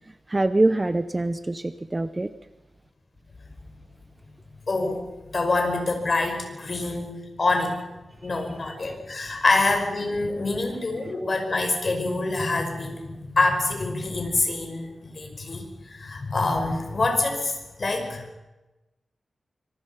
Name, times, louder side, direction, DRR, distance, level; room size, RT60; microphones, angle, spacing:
voice 1, 0.3-2.3 8.3-8.8, right 2 dB, 20° right, 11 dB, 0.8 m, -25 dB
voice 2, 4.7-5.1 5.3-7.8 8.2-18.3, left 3 dB, 40° left, 4 dB, 5.2 m, -26 dB
25.0 x 24.5 x 5.7 m, 1.0 s
wide cardioid pair, 150°, 0 cm